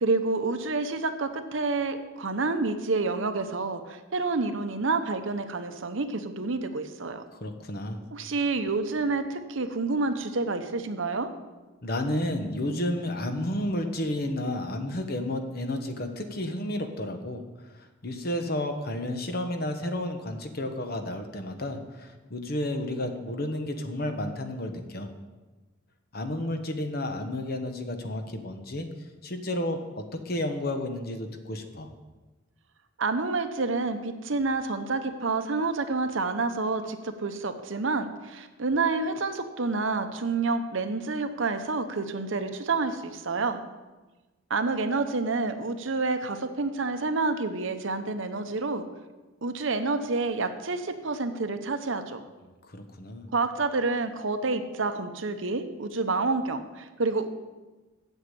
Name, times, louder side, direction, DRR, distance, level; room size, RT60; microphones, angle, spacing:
voice 1, 0.0-7.2 8.1-11.3 33.0-43.6 44.5-48.8 49.4-52.2 53.3-57.3, right 3 dB, 70° right, 8 dB, 0.9 m, -28 dB
voice 2, 7.3-8.0 11.8-25.1 26.1-28.9 29.2-31.9 52.6-53.3, left 1 dB, 50° left, 6 dB, 1.1 m, -32 dB
8.1 x 7.2 x 8.6 m, 1.2 s
head